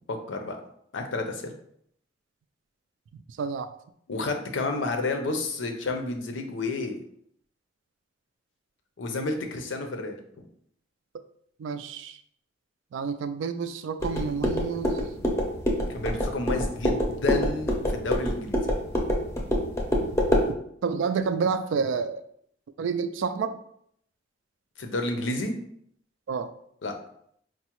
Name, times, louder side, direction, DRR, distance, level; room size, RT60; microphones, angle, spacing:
voice 1, 0.1-0.6 0.9-1.5 4.1-7.0 9.0-10.5 15.9-18.6 24.8-25.5 26.8-26.9, left 2 dB, 80° left, 5 dB, 0.6 m, -30 dB
voice 2, 3.4-3.7 11.6-12.2 12.9-14.9 20.8-22.2 22.8-23.6 26.3-26.5, right 5 dB, 80° right, 10 dB, 0.3 m, -29 dB
sound 1, 14.0-20.5, equal, 15° left, 0.5 m, -26 dB
4.5 x 2.1 x 2.9 m, 0.68 s
head